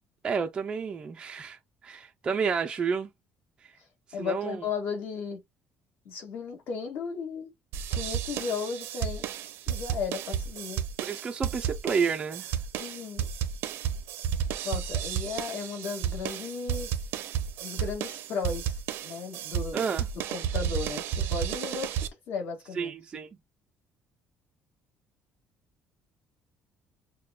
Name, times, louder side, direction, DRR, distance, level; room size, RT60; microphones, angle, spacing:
voice 1, 0.2-1.6 1.8-3.1 4.2-4.6 11.0-12.5 19.7-20.1 22.8-23.3, right 6 dB, 20° right, 0.4 m, -30 dB
voice 2, 4.1-5.4 6.0-7.5 7.9-9.3 9.7-10.8 12.7-13.3 14.6-16.9 17.6-18.7 19.0-19.9 20.3-22.0 22.3-22.9, left 5 dB, 50° left, 1.7 m, -35 dB
sound 1, 7.7-22.1, right 9 dB, 70° right, 0.6 m, -32 dB
6.6 x 2.2 x 2.2 m
cardioid pair, 175°, 4 cm